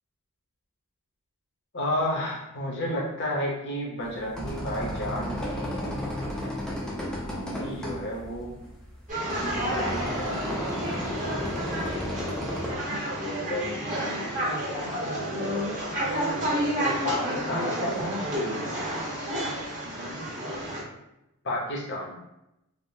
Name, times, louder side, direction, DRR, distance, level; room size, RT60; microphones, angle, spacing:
voice 1, 1.7-6.0 7.2-8.6 9.5-11.8 13.1-14.2 14.7-18.5 21.4-22.2, left 1 dB, 55° left, -2 dB, 0.7 m, -33 dB
sound 1, 4.0-12.8, equal, 5° left, 0.4 m, -33 dB
sound 2, 9.1-20.8, equal, 35° right, 0.9 m, -30 dB
3.4 x 2.0 x 2.6 m, 0.88 s
head